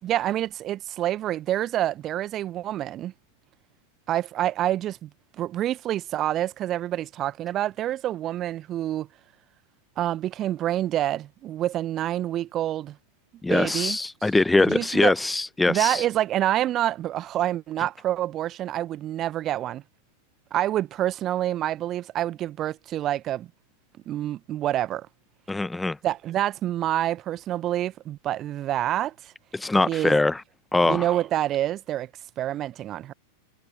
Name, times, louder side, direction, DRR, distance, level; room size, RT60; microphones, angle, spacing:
voice 1, 0.0-3.1 4.1-5.1 5.4-9.1 10.0-13.0 13.5-14.3 14.7-15.1 15.7-19.8 20.5-23.5 24.1-25.1 26.0-29.3 29.8-30.2 30.8-32.1 32.4-33.1, right 13 dB, 30° right, 1.2 m, -27 dB
voice 2, 13.4-16.0 25.5-26.0 29.5-30.4 30.7-31.1, left 2 dB, 5° left, 0.9 m, -22 dB
figure-of-eight pair, 90°, 0 cm